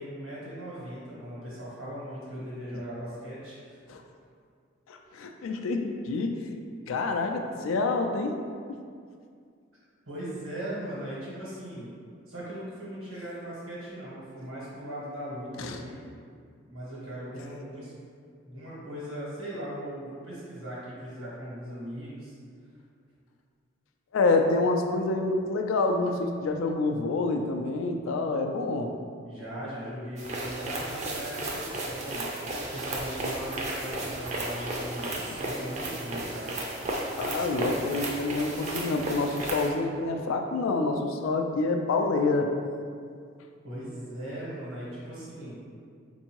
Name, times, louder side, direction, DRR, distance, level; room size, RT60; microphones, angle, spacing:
voice 1, 0.0-3.8 10.1-11.9 12.3-15.9 16.7-17.9 18.4-22.3 29.2-32.3 32.7-36.5 43.6-45.6, right 1 dB, 85° right, -7 dB, 1.3 m, -39 dB
voice 2, 4.9-6.5 6.9-8.4 8.7-8.8 15.6-15.8 24.1-28.9 37.2-42.5, left 3 dB, 80° left, 4 dB, 0.3 m, -27 dB
sound 1, 30.2-39.7, right 1 dB, 35° right, 0.4 m, -34 dB
4.5 x 2.6 x 2.9 m, 2.2 s
head